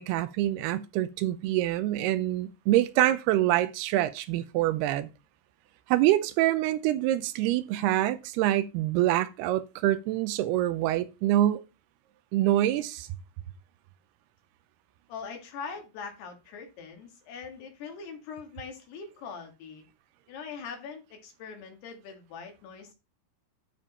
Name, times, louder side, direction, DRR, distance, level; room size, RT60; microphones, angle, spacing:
voice 1, 0.0-5.1 5.9-11.6 12.3-13.1, right 14 dB, 85° right, 2.7 m, -25 dB
voice 2, 15.1-19.8 20.3-22.9, left 5 dB, 80° left, 4.0 m, -42 dB
10.0 x 5.3 x 4.2 m
omnidirectional pair, 4.6 m